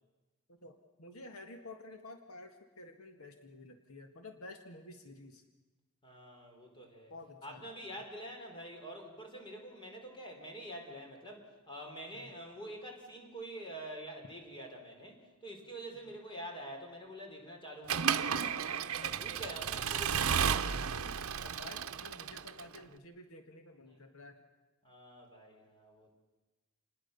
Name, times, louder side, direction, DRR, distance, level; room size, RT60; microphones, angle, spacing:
voice 1, 0.5-5.4 7.1-7.7 12.1-12.3 16.0-16.1 21.4-24.4, left 2 dB, 75° left, 6 dB, 1.8 m, -51 dB
voice 2, 6.0-7.1 7.4-21.1 23.9-24.0 24.8-26.1, right 1 dB, 20° left, 2 dB, 4.5 m, -47 dB
Accelerating revving vroom / Mechanisms, 17.9-22.8, right 7 dB, 70° right, 0.8 m, -33 dB
28.0 x 20.0 x 6.9 m, 1.2 s
head